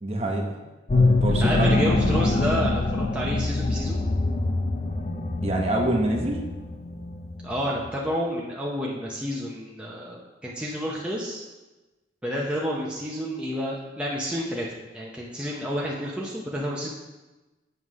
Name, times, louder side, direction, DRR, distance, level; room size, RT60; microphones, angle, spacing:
voice 1, 0.0-0.5 0.9-2.1 5.4-6.5, right 1 dB, 35° right, 1 dB, 0.9 m, -26 dB
sound 1, 0.9-7.9, left 2 dB, 35° left, 0.4 m, -25 dB
voice 2, 1.4-4.0 7.4-11.4 12.2-16.9, equal, 5° right, -4 dB, 0.7 m, -30 dB
7.4 x 3.2 x 6.2 m, 1.1 s
head